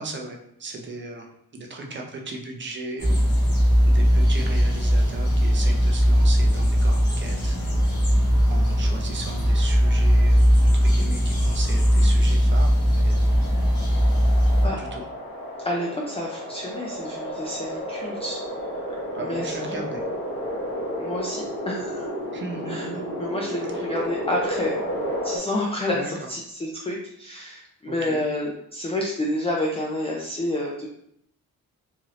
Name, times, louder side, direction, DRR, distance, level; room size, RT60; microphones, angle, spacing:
voice 1, 0.0-3.3 3.8-7.6 8.5-13.2 14.6-15.0 19.1-20.0 22.3-23.1 23.7-23.9 25.9-26.3 27.8-28.2, right 2 dB, 35° right, 1 dB, 0.5 m, -37 dB
sound 1, 3.0-14.7, equal, 55° left, 1.5 m, -19 dB
sound 2, 12.2-25.4, equal, 35° left, 1.1 m, -32 dB
voice 2, 15.6-18.4 19.2-19.8 21.0-22.1 22.7-22.9 23.2-30.9, left 1 dB, 20° left, -2 dB, 0.3 m, -29 dB
4.0 x 2.6 x 3.1 m, 0.73 s
wide cardioid pair, 170°, 35 cm